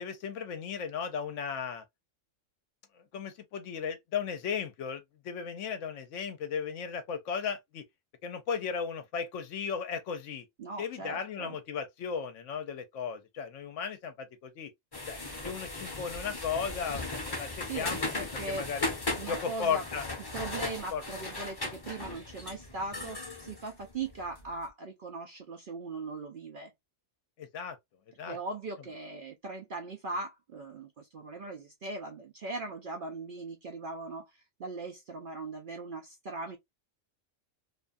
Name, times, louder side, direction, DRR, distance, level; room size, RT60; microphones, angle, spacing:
voice 1, 0.0-1.8 2.9-7.8 8.2-10.5 10.8-14.7 15.1-15.2 15.4-18.9 19.3-20.0 20.9-21.0 27.4-27.8 28.2-28.4, left 6 dB, 75° left, 0.9 m, -36 dB
voice 2, 10.6-11.6 17.7-18.7 19.2-19.8 20.3-26.7 28.3-36.6, right 3 dB, 65° right, 0.5 m, -39 dB
sound 1, 14.9-24.5, left 2 dB, 20° left, 0.7 m, -37 dB
2.6 x 2.3 x 2.4 m
omnidirectional pair, 1.4 m